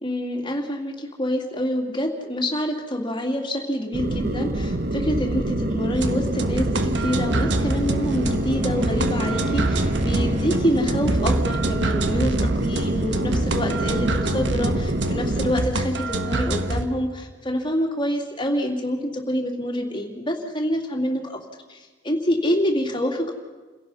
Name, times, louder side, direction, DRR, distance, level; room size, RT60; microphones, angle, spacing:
voice 1, 0.0-21.4 21.7-21.8 22.0-23.4, equal, 25° left, 2 dB, 2.7 m, -26 dB
sound 1, 3.9-15.5, right 1 dB, 55° right, 1.1 m, -26 dB
sound 2, 5.9-16.9, right 2 dB, 80° right, 1.2 m, -26 dB
Wind instrument woodwind instrument, 7.4-11.2, right 2 dB, 30° right, 4.3 m, -44 dB
29.0 x 17.0 x 5.6 m, 1.3 s
head